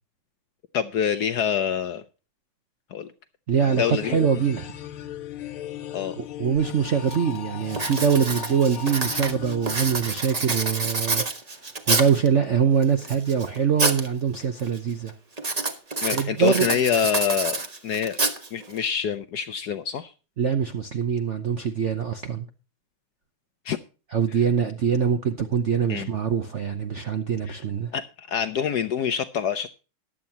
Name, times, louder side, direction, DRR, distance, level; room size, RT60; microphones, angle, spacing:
voice 1, 0.7-2.0 2.9-3.1 3.8-4.2 5.9-6.2 16.0-18.2 18.5-20.1 23.6-23.8 25.9-26.1 27.5-27.6 27.9-29.7, left 8 dB, 65° left, 1.0 m, -26 dB
voice 2, 3.5-4.7 6.2-11.2 11.8-15.1 16.1-16.8 20.4-22.5 24.1-27.9, right 7 dB, 60° right, 0.7 m, -23 dB
sound 1, 3.6-10.6, left 11 dB, 80° left, 1.9 m, -38 dB
Writing, 6.6-6.7 7.1-7.4 7.7-12.3 12.8-14.1 14.4-14.8 15.4-18.8, right 3 dB, 25° right, 0.9 m, -27 dB
15.0 x 11.0 x 2.8 m
omnidirectional pair, 2.3 m